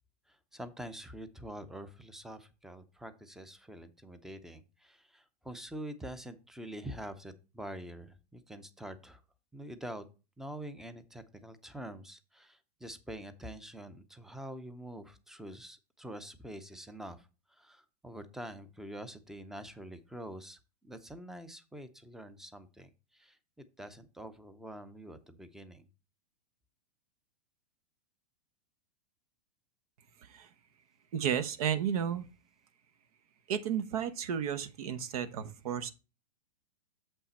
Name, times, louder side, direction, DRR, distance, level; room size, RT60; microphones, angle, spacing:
voice 1, 0.3-9.2 9.5-10.0 10.4-23.4 23.8-25.9, right 1 dB, ahead, 0.6 m, -46 dB
voice 2, 31.1-32.3 33.5-35.9, right 8 dB, 65° right, 0.9 m, -33 dB
7.2 x 5.5 x 4.2 m
hypercardioid pair, 130°, 20 cm